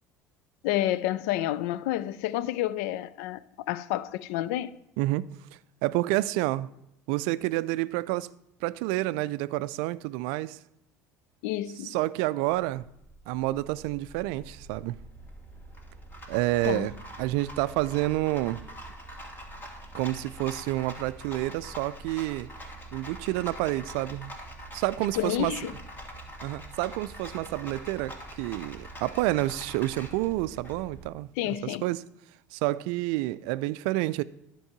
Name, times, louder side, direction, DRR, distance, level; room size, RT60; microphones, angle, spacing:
voice 1, 0.6-4.8 11.4-12.0 16.6-16.9 25.2-25.7 31.4-31.9, left 13 dB, 65° left, 0.4 m, -29 dB
voice 2, 5.8-6.7 7.1-8.3 8.6-10.6 11.8-12.8 13.3-15.0 16.3-16.9 17.2-18.6 19.9-22.5 22.9-24.3 24.7-25.5 26.4-31.3 31.6-32.0 32.5-34.2, right 17 dB, 65° right, 0.4 m, -29 dB
Rattle, 12.6-31.1, right 1 dB, 20° left, 2.3 m, -44 dB
10.5 x 4.7 x 7.3 m
hypercardioid pair, 65°, 9 cm